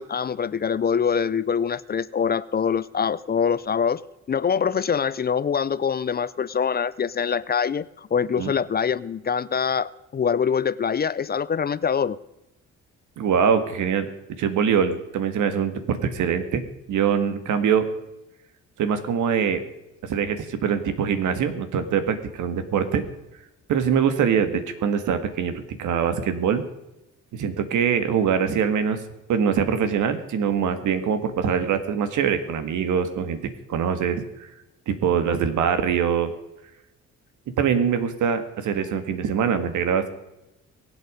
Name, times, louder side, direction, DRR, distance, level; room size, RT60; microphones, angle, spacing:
voice 1, 0.0-4.0 4.3-12.2, left 7 dB, 30° left, 18 dB, 0.5 m, -24 dB
voice 2, 13.2-14.1 14.4-17.9 18.8-19.6 20.0-23.0 23.7-26.6 27.3-29.0 29.3-33.4 33.7-34.5 34.9-36.3 37.6-40.1, right 7 dB, 80° right, 9 dB, 1.9 m, -23 dB
23.0 x 8.1 x 5.1 m, 0.91 s
cardioid pair, 90°, 30 cm